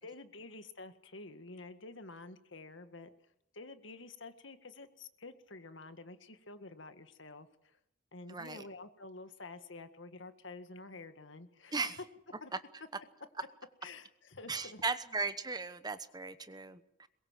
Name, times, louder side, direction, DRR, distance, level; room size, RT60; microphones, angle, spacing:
voice 1, 0.0-3.1 3.5-7.8 8.1-12.1 12.4-12.6 13.8-14.8, left 3 dB, 70° left, 9 dB, 1.8 m, -49 dB
voice 2, 8.3-8.6 11.7-12.0 14.5-17.1, right 4 dB, 20° right, 12 dB, 1.0 m, -37 dB
22.5 x 21.5 x 7.6 m, 0.77 s
head